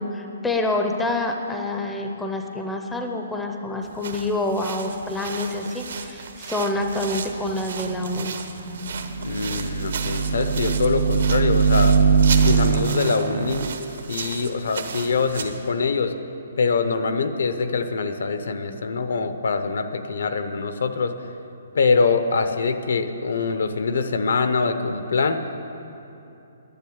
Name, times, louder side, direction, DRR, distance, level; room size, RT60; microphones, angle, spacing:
voice 1, 0.0-8.3, left 2 dB, 5° left, 3 dB, 0.6 m, -27 dB
sound 1, 3.8-15.7, right 6 dB, 65° right, 1.0 m, -35 dB
In the spaceship elevator, 7.8-13.8, equal, 90° left, 3.7 m, -40 dB
sound 2, 8.9-13.7, right 5 dB, 50° right, 0.5 m, -21 dB
voice 2, 9.2-12.0 12.4-13.7 14.1-16.1 16.6-21.1 21.7-25.6, left 4 dB, 75° left, 9 dB, 0.9 m, -24 dB
10.5 x 10.0 x 8.7 m, 2.8 s
hypercardioid pair, 170°, 0 cm